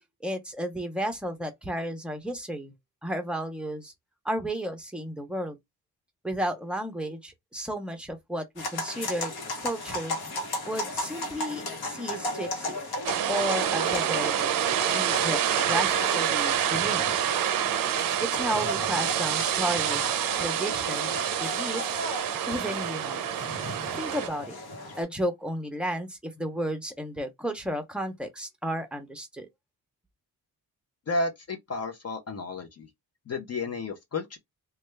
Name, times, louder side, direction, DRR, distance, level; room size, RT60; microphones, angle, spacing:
voice 1, 0.2-2.7 3.0-3.9 4.2-5.6 6.2-9.3 9.6-10.2 10.6-12.8 13.3-15.4 15.7-17.3 18.2-22.0 22.5-23.3 23.9-24.6 25.0-29.5, equal, 5° right, 0.6 m, -33 dB
sound 1, 8.6-25.0, left 2 dB, 80° left, 1.1 m, -36 dB
sound 2, 13.0-24.3, right 10 dB, 65° right, 0.5 m, -27 dB
voice 2, 31.1-32.9 33.3-34.4, left 3 dB, 40° left, 0.6 m, -32 dB
3.2 x 2.3 x 3.2 m
wide cardioid pair, 155°, 37 cm